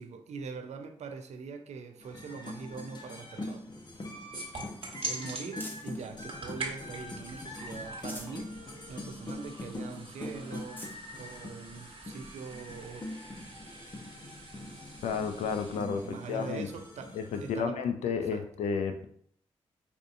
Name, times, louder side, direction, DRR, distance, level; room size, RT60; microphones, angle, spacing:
voice 1, 0.0-3.6 4.9-8.5 8.9-10.9 11.2-13.0 16.0-17.8 18.3-18.4, right 5 dB, 75° right, 0.5 m, -43 dB
sound 1, 2.0-17.6, left 1 dB, 40° left, 0.9 m, -43 dB
sound 2, 3.4-6.1 6.6-7.4 7.8-8.5 8.9-9.0 9.4-9.5 10.1-10.2 10.5-11.0 11.8-11.9 13.7-13.8, equal, 15° left, 1.1 m, -49 dB
sound 3, 4.3-5.5 6.1-15.8, right 2 dB, 55° right, 1.1 m, -44 dB
voice 2, 15.0-16.7 17.1-19.1, left 6 dB, 85° left, 0.4 m, -32 dB
4.9 x 2.6 x 2.6 m
supercardioid pair, 40°, 12 cm